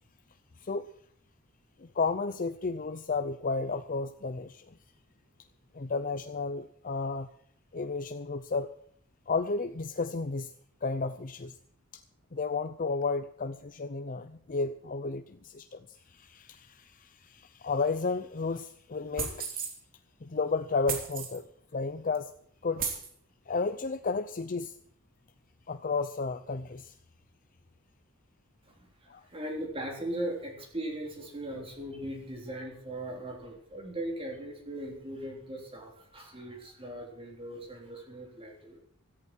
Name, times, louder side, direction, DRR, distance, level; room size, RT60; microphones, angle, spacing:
voice 1, 1.8-4.7 5.7-7.3 7.7-8.7 9.3-10.5 10.8-11.6 11.9-12.0 12.3-19.5 20.2-21.4 21.7-22.3 22.6-22.8 23.5-24.7 25.7-26.9 29.1-29.2, left 4 dB, 40° left, 10 dB, 0.6 m, -32 dB
sound 1, 19.2-19.7 20.9-21.4 22.1-22.2 22.8-23.1, right 6 dB, 45° right, 3.2 m, -34 dB
voice 2, 28.7-38.8, right 1 dB, 25° right, 1 dB, 3.6 m, -39 dB
17.0 x 14.0 x 4.6 m, 0.63 s
head